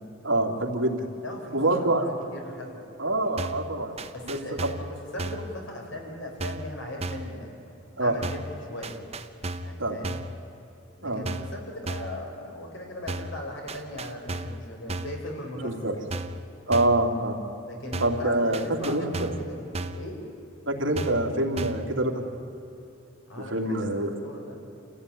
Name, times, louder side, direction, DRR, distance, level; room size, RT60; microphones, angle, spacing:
voice 1, 0.2-1.1 1.5-2.0 3.0-4.7 8.0-8.1 9.8-10.0 11.0-11.2 15.6-15.9 16.7-17.4 18.0-19.3 20.7-22.2 23.4-24.1, right 1 dB, 75° right, 1 dB, 2.9 m, -26 dB
voice 2, 1.2-2.8 4.1-7.7 8.0-9.0 9.6-10.2 11.0-16.1 17.6-19.7 19.9-20.2 23.3-24.6, left 1 dB, 75° left, 1 dB, 4.8 m, -39 dB
sound 1, 3.4-3.7 4.0-4.9 5.2-5.5 6.4-6.7 7.0-7.3 8.2-8.5 8.8-9.8 10.0-10.4 11.3-11.6 11.9-12.2 13.1-13.4 13.7-14.6 14.9-15.2 16.1-16.4 16.7-17.0 17.9-18.3 18.5-19.5 19.7-20.1 21.0-21.3 21.6-21.9, right 2 dB, 35° right, 0.9 m, -34 dB
28.0 x 15.0 x 9.9 m, 2.8 s
head